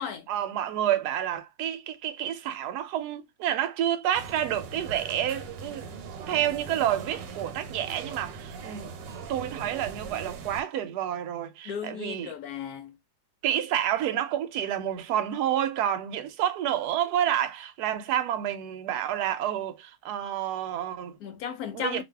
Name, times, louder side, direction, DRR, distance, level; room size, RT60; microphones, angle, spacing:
voice 1, 0.3-5.9 6.3-8.9 9.3-12.3 13.4-21.2 21.7-22.0, right 11 dB, 70° right, 1.1 m, -29 dB
sound 1, 4.1-10.6, right 5 dB, 90° right, 1.3 m, -40 dB
voice 2, 11.6-13.0 21.2-22.0, left 8 dB, 70° left, 1.0 m, -35 dB
2.7 x 2.5 x 3.3 m
omnidirectional pair, 1.9 m